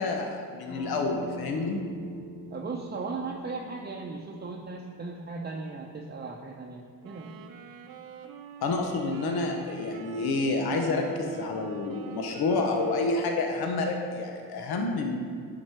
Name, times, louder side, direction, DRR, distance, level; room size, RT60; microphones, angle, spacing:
voice 1, 0.0-1.8 8.6-15.2, left 3 dB, 90° left, 3 dB, 0.9 m, -29 dB
sound 1, 0.7-6.1, left 1 dB, 65° left, 2.2 m, -44 dB
voice 2, 2.5-7.3, right 3 dB, 30° right, 0 dB, 0.6 m, -37 dB
sound 2, 7.0-13.6, right 7 dB, 75° right, 0.7 m, -46 dB
9.6 x 5.1 x 4.6 m, 2.1 s
cardioid pair, 95°, 36 cm